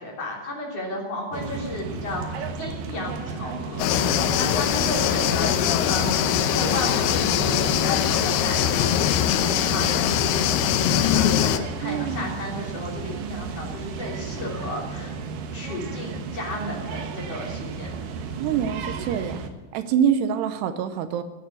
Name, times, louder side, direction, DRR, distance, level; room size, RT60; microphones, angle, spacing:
voice 1, 0.0-15.2 15.5-18.0, left 1 dB, 40° left, -2 dB, 4.1 m, -33 dB
sound 1, 1.3-19.5, right 5 dB, 65° right, 2.5 m, -33 dB
sound 2, 3.8-11.6, left 11 dB, 75° left, 2.6 m, -22 dB
voice 2, 11.8-12.3 18.4-19.4 19.7-21.2, right 8 dB, 80° right, 9 dB, 2.9 m, -25 dB
16.0 x 9.3 x 8.3 m, 1.3 s
omnidirectional pair, 4.9 m